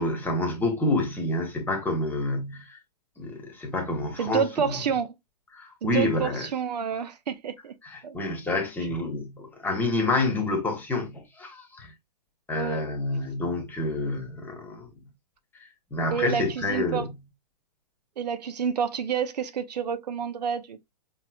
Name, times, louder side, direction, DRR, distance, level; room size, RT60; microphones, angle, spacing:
voice 1, 0.0-2.8 3.2-4.8 5.5-6.5 7.8-11.9 12.5-14.9 15.9-17.2, left 2 dB, 10° left, 1.2 m, -28 dB
voice 2, 4.2-5.1 5.8-7.7 8.0-8.2 12.5-12.8 16.1-17.1 18.2-20.9, right 7 dB, 80° right, 0.8 m, -29 dB
5.3 x 3.2 x 2.3 m
hypercardioid pair, 145°, 21 cm